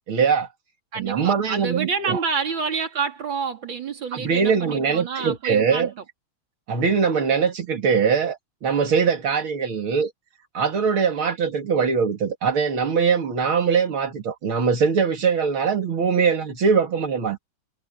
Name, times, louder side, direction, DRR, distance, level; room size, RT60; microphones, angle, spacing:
voice 1, 0.1-0.5 1.0-2.2 4.1-5.9 6.7-10.1 10.5-17.4, right 6 dB, 85° right, 3.0 m, -22 dB
voice 2, 0.9-5.9, right 5 dB, 70° right, 3.6 m, -28 dB
omnidirectional pair, 2.3 m